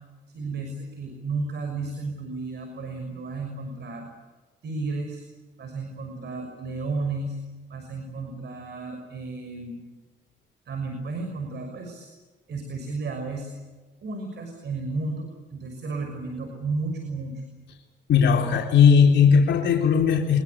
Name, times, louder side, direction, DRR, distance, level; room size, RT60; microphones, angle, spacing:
voice 1, 0.3-4.1 4.6-5.2 5.6-7.4 7.7-9.8 10.7-12.1 12.5-13.5 14.0-17.4, right 3 dB, 60° right, 4 dB, 6.2 m, -33 dB
voice 2, 18.1-20.4, left 6 dB, 65° left, 0 dB, 3.9 m, -18 dB
24.5 x 23.0 x 8.6 m, 1.3 s
cardioid pair, 90°, 20 cm